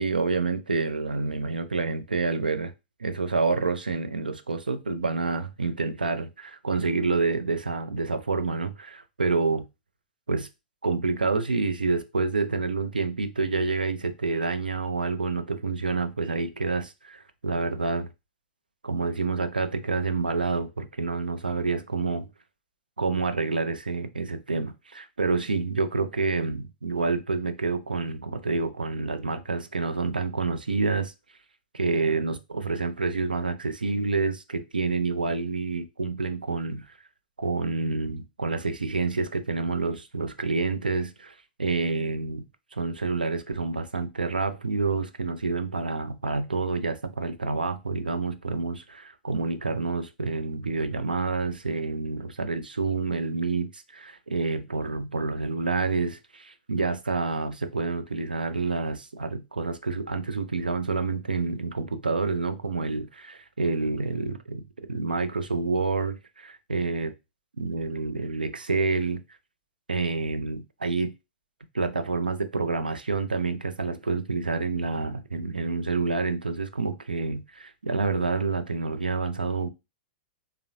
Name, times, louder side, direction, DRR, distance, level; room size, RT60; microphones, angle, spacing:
voice 1, 0.0-2.7 3.0-9.7 10.3-10.5 10.8-18.1 18.8-22.3 23.0-31.1 31.7-36.8 37.4-42.4 42.7-64.6 64.9-67.1 67.6-69.2 69.9-71.1 71.7-79.7, right 4 dB, 75° right, 0.4 m, -28 dB
3.6 x 2.0 x 2.6 m
figure-of-eight pair, 100°, 5 cm